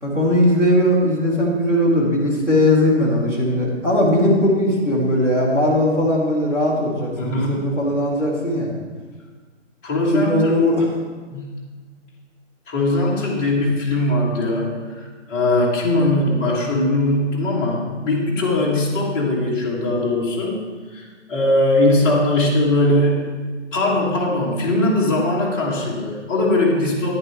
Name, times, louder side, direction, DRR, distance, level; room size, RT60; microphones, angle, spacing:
voice 1, 0.0-8.7 10.1-10.9, left 1 dB, 5° right, -8 dB, 1.3 m, -19 dB
voice 2, 7.2-7.7 9.8-10.5 11.3-11.5 12.7-20.6 20.9-23.3 23.7-27.2, left 1 dB, 15° left, -6 dB, 1.4 m, -20 dB
10.5 x 9.8 x 3.4 m, 1.4 s
hypercardioid pair, 165°, 37 cm